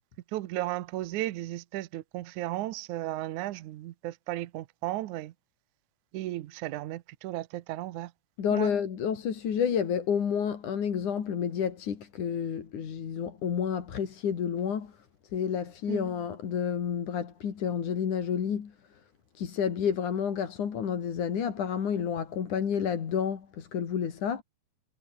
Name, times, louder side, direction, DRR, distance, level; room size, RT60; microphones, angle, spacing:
voice 1, 0.3-5.3 6.1-8.1 8.5-8.7 15.9-16.1, right 16 dB, 75° right, 2.3 m, -35 dB
voice 2, 8.4-14.9 15.3-18.7 19.4-24.4, left 7 dB, 70° left, 4.1 m, -30 dB
omnidirectional pair, 3.6 m